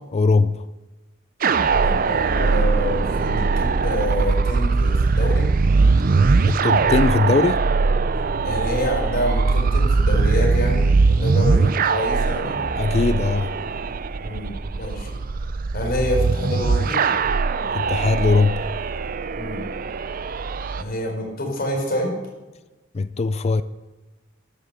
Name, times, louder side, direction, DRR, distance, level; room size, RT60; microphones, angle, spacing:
voice 1, 0.1-0.6 6.5-7.6 12.8-13.5 17.7-18.7 22.9-23.6, left 3 dB, 35° left, 0.4 m, -20 dB
sound 1, 1.4-20.8, right 4 dB, 45° right, 0.5 m, -21 dB
voice 2, 1.7-5.5 8.4-12.6 14.2-15.2 15.7-17.0 19.4-19.7 20.7-22.2, equal, 50° left, 4.2 m, -27 dB
12.5 x 10.0 x 6.7 m
head